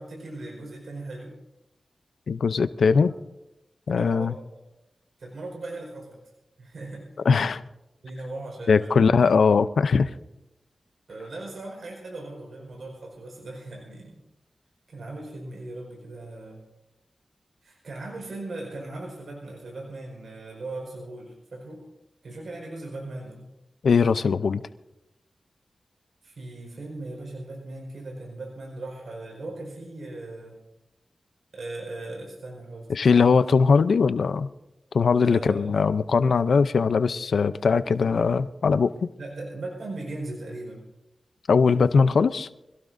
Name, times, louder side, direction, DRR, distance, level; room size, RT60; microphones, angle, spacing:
voice 1, 0.0-1.4 3.0-3.1 4.0-4.4 5.2-6.2 6.6-7.1 8.0-9.0 11.1-14.2 14.9-16.6 17.6-21.8 22.2-23.5 26.2-30.6 31.5-33.1 35.3-35.9 39.2-40.8, right 2 dB, 75° right, -1 dB, 4.7 m, -38 dB
voice 2, 2.3-3.1 3.9-4.3 7.2-7.6 8.7-10.1 23.8-24.6 32.9-34.5 34.9-39.1 41.5-42.5, left 5 dB, 85° left, 13 dB, 0.6 m, -20 dB
25.5 x 17.5 x 2.7 m, 0.91 s
wide cardioid pair, 80°, 0 cm